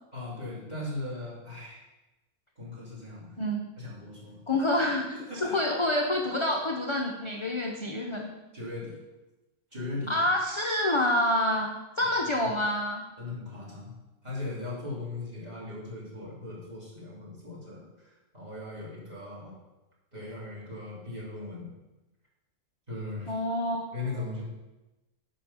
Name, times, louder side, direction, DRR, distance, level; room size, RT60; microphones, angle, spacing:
voice 1, 0.1-1.8 2.6-3.3 3.8-4.4 4.7-4.8 5.3-5.5 8.5-8.9 9.7-10.2 13.2-13.9 14.2-19.5 20.1-21.7 22.9-23.3 23.9-24.4, left 2 dB, 25° right, -6 dB, 3.0 m, -38 dB
voice 2, 4.5-5.1 5.3-8.3 10.1-13.0 23.3-23.9, left 1 dB, 30° left, 0 dB, 0.6 m, -27 dB
8.5 x 5.3 x 5.6 m, 1.0 s
omnidirectional pair, 1.6 m